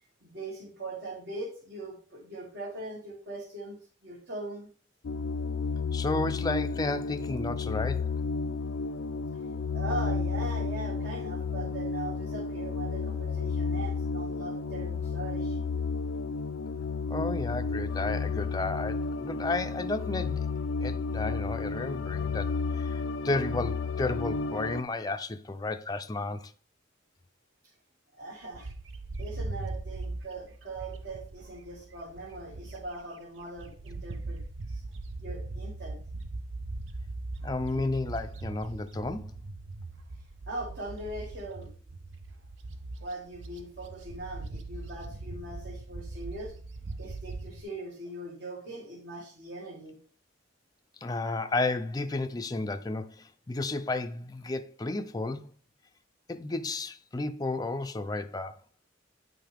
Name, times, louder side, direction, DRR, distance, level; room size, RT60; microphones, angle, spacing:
voice 1, 0.2-4.7 9.7-15.6 28.1-28.7 29.2-34.4 34.7-34.8 35.2-36.0 40.5-41.7 43.0-46.5 47.0-50.0, right 2 dB, 60° right, 1.8 m, -40 dB
sound 1, 5.0-24.8, left 4 dB, 85° left, 0.4 m, -32 dB
voice 2, 5.9-8.1 17.1-20.5 20.8-22.5 22.8-26.5 37.4-39.3 51.0-55.5 56.3-58.5, left 2 dB, 20° left, 0.5 m, -32 dB
Bird, 28.5-33.0 33.4-47.6, right 2 dB, 75° right, 0.7 m, -40 dB
9.1 x 5.8 x 3.5 m
head